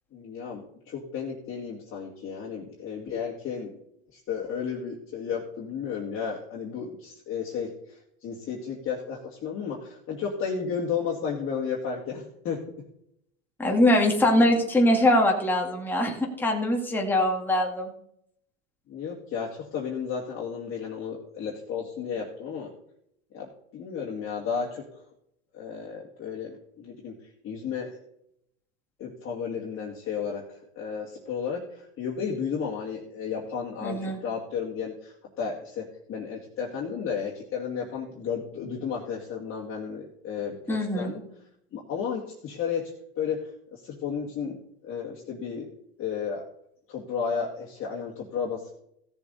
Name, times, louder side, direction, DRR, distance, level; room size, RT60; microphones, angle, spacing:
voice 1, 0.1-3.7 4.1-12.6 14.4-14.5 18.9-22.7 23.3-25.0 25.5-27.1 27.4-27.9 29.0-41.2 41.7-44.6 44.8-45.7 46.0-46.5 46.9-48.7, left 6 dB, 30° left, -4 dB, 2.4 m, -33 dB
voice 2, 13.6-17.9 33.8-34.2 40.7-41.1, left 1 dB, 5° left, 0 dB, 2.0 m, -22 dB
16.0 x 7.1 x 4.1 m, 0.72 s
supercardioid pair, 130°, 42 cm